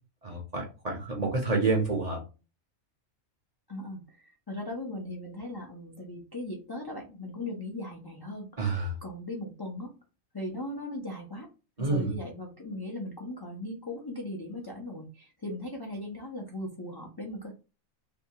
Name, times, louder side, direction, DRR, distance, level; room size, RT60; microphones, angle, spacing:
voice 1, 0.2-2.2 8.6-9.0 11.8-12.1, right 3 dB, 40° right, 0.6 m, -28 dB
voice 2, 3.7-9.9 10.3-11.5 11.8-17.5, left 1 dB, 40° left, 0.3 m, -38 dB
2.7 x 2.2 x 2.8 m
omnidirectional pair, 1.4 m